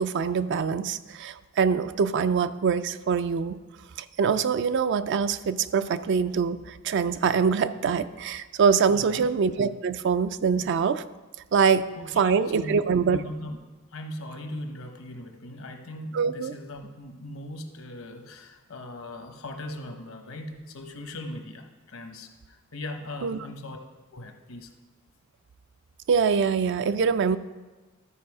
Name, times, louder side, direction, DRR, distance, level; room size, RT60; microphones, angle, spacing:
voice 1, 0.0-3.6 4.2-11.0 11.5-11.8 12.2-13.2 16.1-16.5 23.2-23.4 26.1-27.4, right 6 dB, 60° right, 13 dB, 0.4 m, -24 dB
voice 2, 8.9-9.2 10.6-10.7 12.0-12.8 13.1-13.6 13.9-23.8 24.1-24.7, left 1 dB, 85° left, 5 dB, 1.0 m, -39 dB
13.0 x 4.8 x 4.8 m, 1.2 s
head